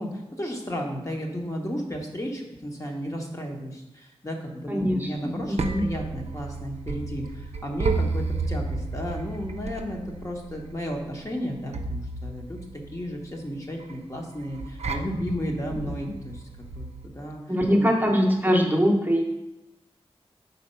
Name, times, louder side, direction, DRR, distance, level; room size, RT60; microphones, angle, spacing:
voice 1, 0.0-12.6 12.9-16.4 16.7-17.4 17.8-17.9, equal, 30° left, 0 dB, 1.0 m, -33 dB
voice 2, 4.7-5.8 17.5-19.2, equal, 15° right, 0 dB, 0.8 m, -22 dB
sound 1, 5.2-17.1, right 3 dB, 85° right, 0.4 m, -33 dB
4.6 x 4.2 x 5.4 m, 0.97 s
wide cardioid pair, 75°, 11 cm